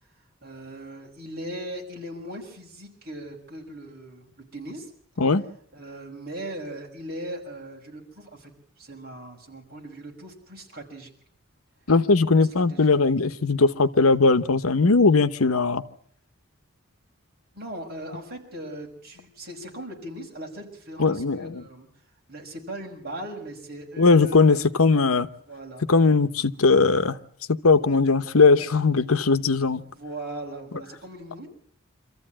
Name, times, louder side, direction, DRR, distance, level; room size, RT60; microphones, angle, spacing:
voice 1, 0.4-4.2 4.5-4.9 5.7-8.5 8.8-11.1 12.4-12.9 17.5-21.9 22.3-24.6 25.5-25.8 29.8-31.5, right 1 dB, 45° right, 6.3 m, -39 dB
voice 2, 11.9-15.8 21.0-21.6 24.0-25.3 25.9-27.2 27.5-29.8, left 4 dB, 85° left, 1.0 m, -19 dB
26.0 x 14.5 x 8.8 m
head